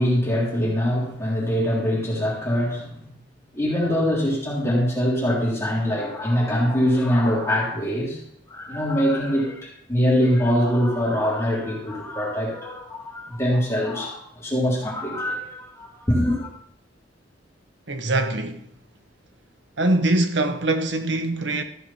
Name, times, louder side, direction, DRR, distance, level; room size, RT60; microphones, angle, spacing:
voice 1, 0.0-3.1 3.5-8.2 8.5-16.5, equal, 15° left, 3.3 m, -23 dB
voice 2, 17.9-18.7 19.8-21.6, right 2 dB, 75° right, 1.1 m, -23 dB
14.0 x 6.2 x 5.6 m
head